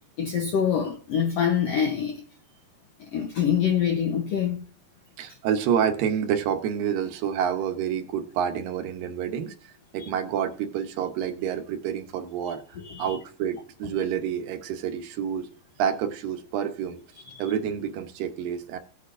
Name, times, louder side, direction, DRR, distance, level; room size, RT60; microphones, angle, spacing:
voice 1, 0.2-2.2 3.1-4.6 12.8-13.2 17.3-17.5, left 8 dB, 75° left, 1.5 m, -25 dB
voice 2, 5.2-9.6 9.9-12.6 13.0-15.5 15.8-17.0 17.4-18.8, right 8 dB, 80° right, 2.6 m, -28 dB
19.0 x 8.6 x 2.5 m
omnidirectional pair, 4.0 m